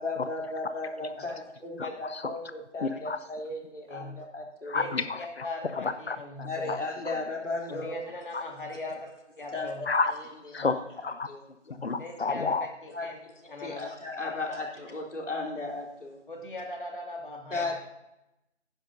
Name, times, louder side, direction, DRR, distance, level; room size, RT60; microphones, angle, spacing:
voice 1, 0.0-4.8 6.4-8.1 9.5-9.7 10.6-10.7 11.3-11.4 12.9-13.1 13.4-16.2 17.5-17.8, left 2 dB, 85° left, -1 dB, 3.1 m, -35 dB
voice 2, 1.8-2.3 2.8-3.2 4.7-5.5 5.7-6.8 7.1-7.2 8.3-8.4 9.8-10.1 10.5-11.3 11.7-12.7, left 4 dB, 60° left, 12 dB, 0.7 m, -31 dB
voice 3, 5.4-6.7 7.7-9.1 9.4-9.8 12.0-13.2 13.5-13.9 16.3-17.8, left 2 dB, 45° left, 2 dB, 1.9 m, -39 dB
12.0 x 10.0 x 2.6 m, 0.88 s
figure-of-eight pair, 180°, 35 cm